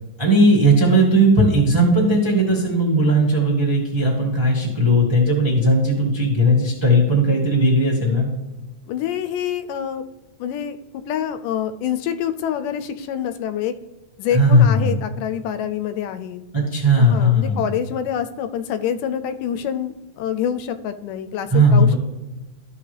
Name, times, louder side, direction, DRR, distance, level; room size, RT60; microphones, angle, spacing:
voice 1, 0.2-8.3 14.3-14.9 16.5-17.7 21.5-21.9, equal, 15° right, -4 dB, 1.1 m, -17 dB
voice 2, 8.9-10.0 10.4-10.8 11.1-13.7 14.2-16.4 17.0-21.9, left 9 dB, 85° left, 10 dB, 2.1 m, -26 dB
13.5 x 5.4 x 3.3 m, 1.1 s
omnidirectional pair, 3.7 m